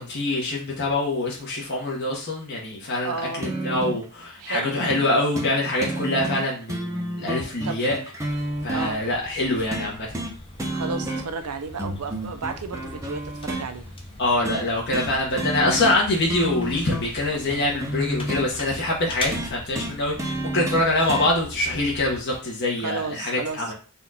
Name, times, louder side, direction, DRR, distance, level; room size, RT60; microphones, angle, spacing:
voice 1, 0.0-8.0 8.6-10.1 14.2-23.7, left 2 dB, 50° left, -3 dB, 1.1 m, -25 dB
voice 2, 3.0-3.5 4.4-4.8 7.5-8.0 8.7-9.0 10.7-13.9 22.8-23.7, right 4 dB, 80° right, 8 dB, 0.6 m, -33 dB
sound 1, 3.4-4.0 4.9-5.1 5.3-5.5 5.8-8.9 9.7-10.3 10.6-11.4 11.8-13.7 14.4-14.6 14.9-15.1 15.4-16.0 16.3-18.5 19.3-21.3 22.3-22.4, right 1 dB, 15° right, 0.7 m, -30 dB
sound 2, 8.2-22.2, left 2 dB, 25° left, 0.7 m, -41 dB
4.3 x 2.5 x 4.1 m, 0.38 s
head